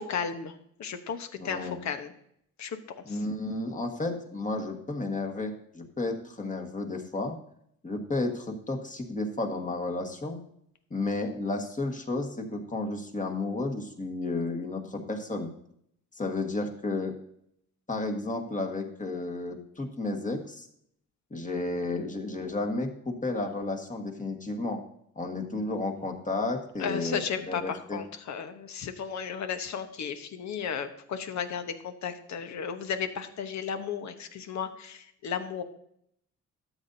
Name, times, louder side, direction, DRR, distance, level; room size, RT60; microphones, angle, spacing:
voice 1, 0.0-2.1 2.6-2.8 3.1-3.3 26.8-35.6, left 7 dB, 65° left, 8 dB, 1.1 m, -34 dB
voice 2, 1.4-1.8 3.0-7.4 7.8-10.4 10.9-15.5 16.1-17.1 17.9-20.7 21.3-24.8 25.1-28.0, left 2 dB, 25° left, 3 dB, 1.6 m, -32 dB
13.0 x 8.0 x 2.7 m, 0.70 s
cardioid pair, 90°, 30 cm